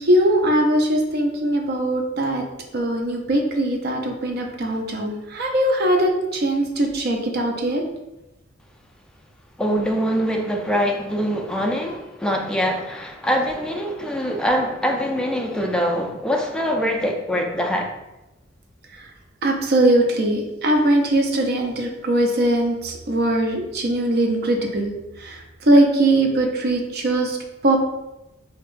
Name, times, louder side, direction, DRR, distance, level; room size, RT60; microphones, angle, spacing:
voice 1, 0.0-2.4 2.7-7.8 19.4-24.9 25.2-27.4 27.6-27.8, right 1 dB, 55° right, 2 dB, 0.6 m, -20 dB
voice 2, 9.6-17.9, equal, 5° left, 1 dB, 0.4 m, -23 dB
5.5 x 2.4 x 2.5 m, 0.96 s
head